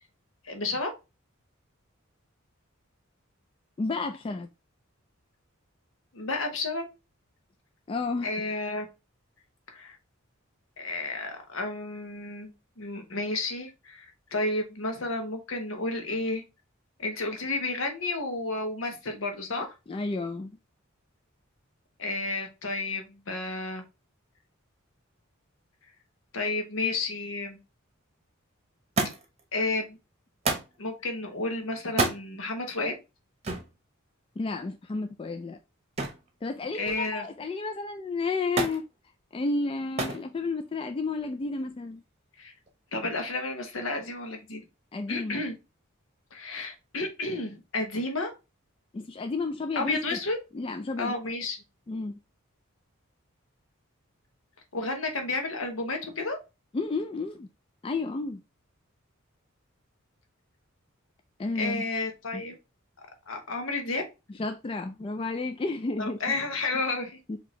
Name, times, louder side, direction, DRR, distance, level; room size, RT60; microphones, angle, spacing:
voice 1, 0.4-0.9 6.1-6.9 8.2-8.9 9.7-10.0 10.8-12.5 12.8-16.4 17.0-19.7 22.0-23.8 26.3-27.6 29.5-30.0 30.8-33.0 36.8-37.3 42.4-42.5 42.9-44.6 45.1-45.5 46.3-48.3 49.7-50.4 51.0-51.6 54.7-56.4 61.5-62.6 63.3-64.0 66.0-67.2, left 2 dB, 70° left, 1.1 m, -31 dB
voice 2, 3.8-4.5 7.9-8.3 19.6-20.5 34.4-35.6 36.4-38.8 39.3-42.0 44.9-45.4 48.9-50.2 50.5-51.2 51.9-52.2 56.7-57.5 57.8-58.4 61.4-61.8 62.3-62.4 64.4-66.2 67.3-67.4, left 3 dB, 25° left, 0.3 m, -31 dB
Thump thud, 29.0-29.4 30.4-30.8 31.9-32.2 33.4-33.7 36.0-36.3 36.6-37.2 38.6-38.8 40.0-40.3 41.2-41.7 42.7-42.8, right 3 dB, 30° right, 0.9 m, -29 dB
4.3 x 2.8 x 3.0 m
head